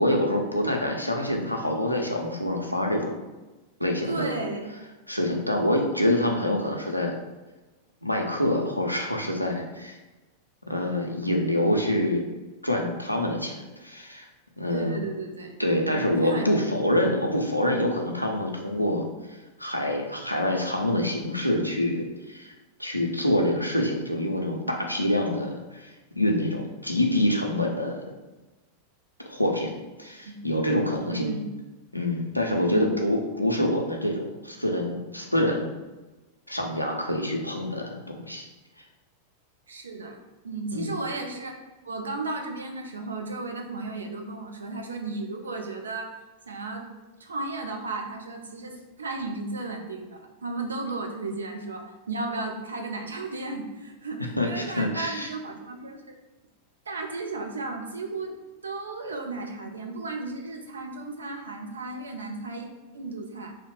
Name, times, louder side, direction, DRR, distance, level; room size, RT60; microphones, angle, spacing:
voice 1, 0.0-3.1 3.8-4.3 5.1-7.2 8.0-10.0 10.7-12.3 12.6-14.3 14.6-15.0 15.6-19.0 19.6-22.5 22.8-28.0 29.3-29.7 30.0-31.3 31.9-35.7 36.5-38.5 40.7-40.9 54.4-55.3, left 1 dB, 90° left, 1 dB, 0.4 m, -26 dB
voice 2, 4.1-4.7 14.7-16.7 30.3-30.4 31.1-31.5 32.6-32.9 39.7-40.2 40.4-41.6 41.8-46.2 46.5-46.9 47.2-56.0 56.9-58.4 58.6-62.7 62.9-63.6, right 3 dB, 70° right, 3 dB, 0.4 m, -34 dB
2.6 x 2.1 x 3.1 m, 1.1 s
figure-of-eight pair, 90°, 0 cm